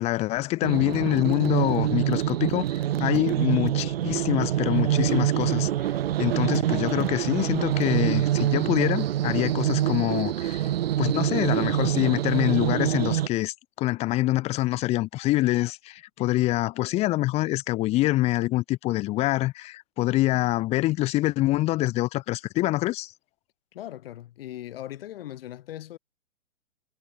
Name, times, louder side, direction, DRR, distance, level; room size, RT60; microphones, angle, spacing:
voice 1, 0.0-5.7 6.2-10.6 11.0-23.1, left 17 dB, 15° left, 1.6 m, -25 dB
sound 1, 0.6-13.3, right 12 dB, 40° right, 2.8 m, -25 dB
voice 2, 23.7-26.0, left 13 dB, 40° left, 7.2 m, -39 dB
hypercardioid pair, 160°, 44 cm